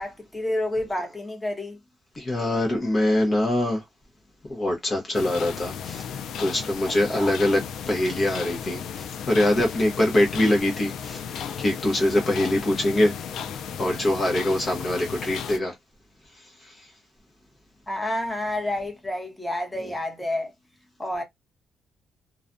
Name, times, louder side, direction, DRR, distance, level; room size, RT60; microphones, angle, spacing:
voice 1, 0.0-1.8 7.1-7.3 17.9-20.5 21.0-21.2, left 1 dB, 10° left, 1.0 m, -29 dB
voice 2, 2.2-3.8 4.5-13.2 13.8-15.8 16.4-16.9 19.9-20.0, left 1 dB, 35° left, 0.8 m, -24 dB
sound 1, 5.1-15.6, left 8 dB, 75° left, 0.3 m, -35 dB
2.4 x 2.1 x 2.5 m
cardioid pair, 90°, 0 cm